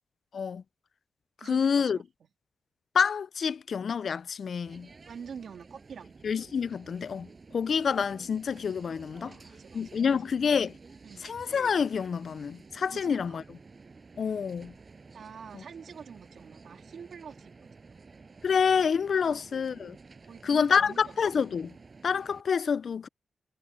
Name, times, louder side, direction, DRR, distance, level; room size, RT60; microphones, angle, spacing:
voice 1, 0.3-0.6 1.4-2.0 2.9-4.9 6.2-9.4 9.7-10.7 11.2-13.4 14.2-14.7 18.4-20.0 20.4-21.7 22.0-23.1, left 6 dB, 55° left, 0.3 m, -27 dB
voice 2, 1.4-2.0 5.1-6.1 9.2-10.3 11.0-11.3 12.9-13.6 15.1-17.7 19.2-19.5 20.3-21.2, right 6 dB, 65° right, 2.5 m, -46 dB
sound 1, 4.7-22.4, right 4 dB, 35° right, 6.5 m, -52 dB
wide cardioid pair, 125°, 0 cm